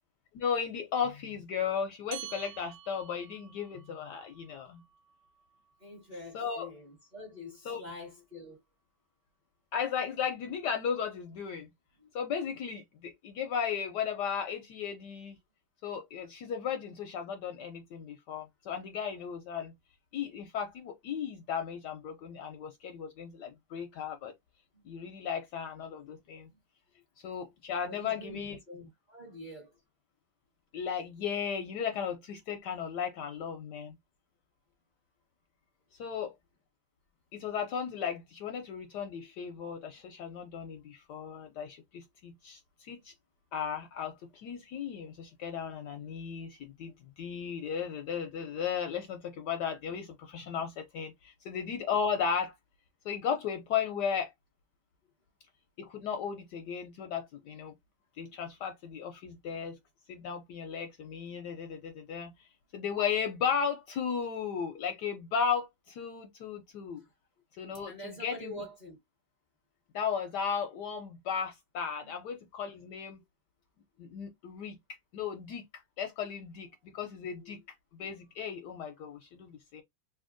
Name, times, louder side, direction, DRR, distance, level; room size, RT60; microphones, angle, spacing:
voice 1, 0.3-4.8 6.3-6.7 7.7-7.8 9.7-11.7 12.1-15.4 15.8-19.7 20.1-24.3 24.8-26.5 27.2-28.6 30.7-33.9 36.0-36.3 37.3-43.1 43.5-52.5 53.0-54.3 55.8-57.7 58.2-59.8 60.1-62.5 62.7-67.0 67.6-68.6 69.9-73.2 74.0-74.7 75.1-75.6 76.0-76.7 76.9-77.6 78.0-79.8, left 7 dB, 70° left, 1.0 m, -35 dB
sound 1, 2.1-6.9, right 13 dB, 80° right, 1.3 m, -50 dB
voice 2, 5.8-8.6 12.0-12.1 24.7-24.8 27.8-29.7 50.6-50.7 67.0-67.1 67.9-69.0 72.0-72.1 77.4-77.6, left 1 dB, 25° right, 1.0 m, -46 dB
3.4 x 2.6 x 2.5 m
omnidirectional pair, 2.1 m